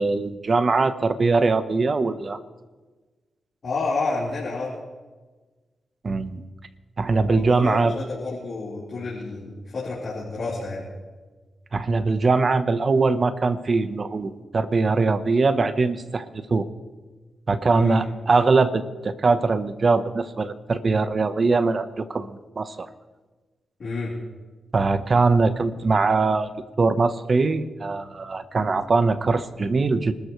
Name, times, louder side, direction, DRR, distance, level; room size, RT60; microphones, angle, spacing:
voice 1, 0.0-2.4 6.0-6.4 7.0-7.9 11.7-16.6 17.5-22.9 24.7-26.5 26.8-30.1, right 3 dB, 45° right, 11 dB, 1.0 m, -22 dB
voice 2, 3.6-4.7 7.3-10.8 17.7-18.0 23.8-24.1, left 3 dB, 55° left, -8 dB, 4.2 m, -30 dB
26.0 x 13.5 x 3.2 m, 1.3 s
cardioid pair, 70°, 0 cm